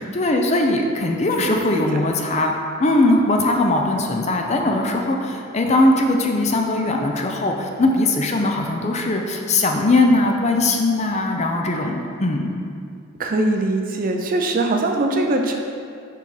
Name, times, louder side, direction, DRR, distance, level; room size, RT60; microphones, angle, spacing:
voice 1, 0.0-12.5, left 2 dB, 30° left, 2 dB, 0.4 m, -20 dB
voice 2, 1.4-1.9 13.2-15.5, right 2 dB, 40° right, 3 dB, 0.4 m, -22 dB
5.4 x 3.9 x 4.9 m, 2.4 s
head